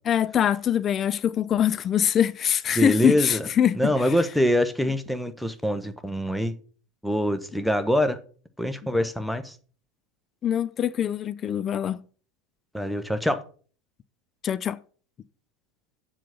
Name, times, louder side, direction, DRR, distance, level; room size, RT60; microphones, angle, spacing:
voice 1, 0.1-4.1 10.4-12.0 14.4-14.8, left 9 dB, 30° left, 0.4 m, -23 dB
voice 2, 2.7-3.5 3.7-6.5 7.0-8.2 8.6-9.6 12.7-13.4, equal, ahead, 1.0 m, -24 dB
7.5 x 5.8 x 6.7 m
figure-of-eight pair, 80°, 0 cm